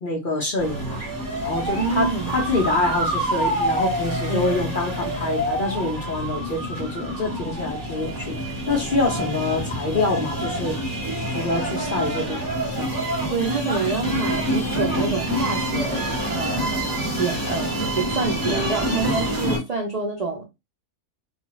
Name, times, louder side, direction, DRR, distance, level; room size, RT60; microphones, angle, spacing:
voice 1, 0.0-1.0 1.4-8.4 8.7-10.8 11.3-12.9, left 2 dB, 50° left, 0.6 m, -26 dB
sound 1, 0.6-19.6, right 1 dB, 20° right, 0.8 m, -27 dB
voice 2, 1.8-2.3 4.3-4.6 13.3-16.8 17.2-20.4, right 4 dB, 55° right, 0.4 m, -27 dB
2.4 x 2.3 x 3.0 m
omnidirectional pair, 1.5 m